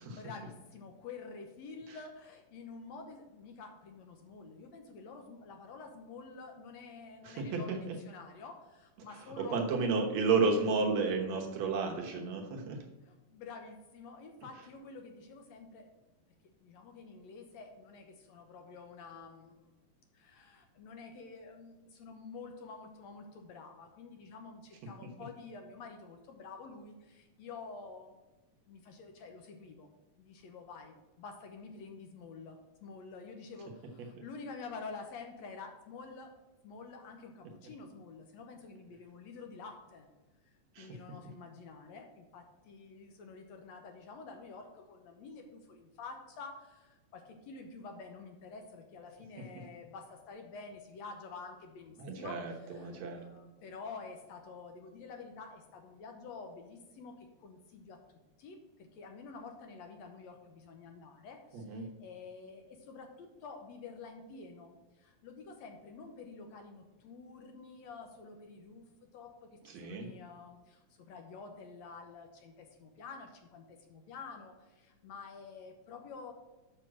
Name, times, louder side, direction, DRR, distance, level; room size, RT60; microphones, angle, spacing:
voice 1, 0.0-9.9 13.0-15.9 16.6-19.7 20.1-28.2 28.7-29.9 30.2-36.3 36.6-40.1 40.4-52.4 52.7-58.0 58.4-68.8 69.1-76.3, left 4 dB, 70° left, 4 dB, 1.9 m, -49 dB
voice 2, 7.2-7.9 9.4-12.9 40.8-41.0 52.0-53.2 61.5-61.9 69.7-70.1, right 4 dB, 65° right, 1 dB, 2.2 m, -32 dB
6.9 x 6.0 x 6.0 m, 1.1 s
omnidirectional pair, 3.5 m